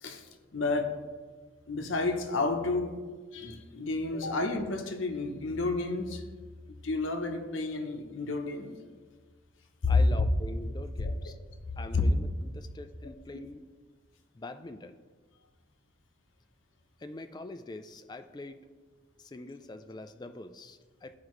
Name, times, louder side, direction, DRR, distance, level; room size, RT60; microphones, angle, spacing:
voice 1, 0.0-1.0 1.7-3.0 3.3-6.2 6.7-8.7 11.9-12.0, left 3 dB, 70° left, 5 dB, 0.8 m, -31 dB
voice 2, 9.9-11.4 11.8-13.7 14.3-15.0 17.0-18.7 19.2-21.2, left 2 dB, 20° left, 9 dB, 0.3 m, -44 dB
13.5 x 4.9 x 3.1 m, 1.4 s
head